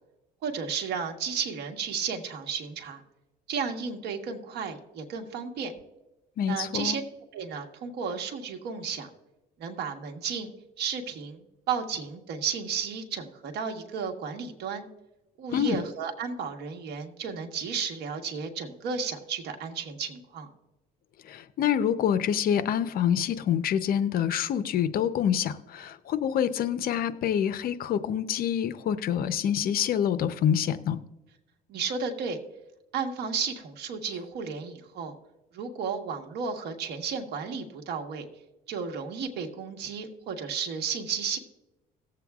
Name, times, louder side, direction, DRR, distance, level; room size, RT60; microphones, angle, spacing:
voice 1, 0.4-3.0 3.5-5.7 6.5-7.0 7.3-9.1 9.6-10.5 10.8-14.8 15.4-20.5 31.7-32.4 32.9-35.2 35.5-38.2 38.7-41.4, right 6 dB, 75° right, 4 dB, 1.3 m, -33 dB
voice 2, 6.4-7.0 15.5-15.8 21.2-31.0, left 9 dB, 60° left, 13 dB, 0.6 m, -26 dB
18.0 x 7.7 x 2.4 m, 1.0 s
cardioid pair, 110°, 17 cm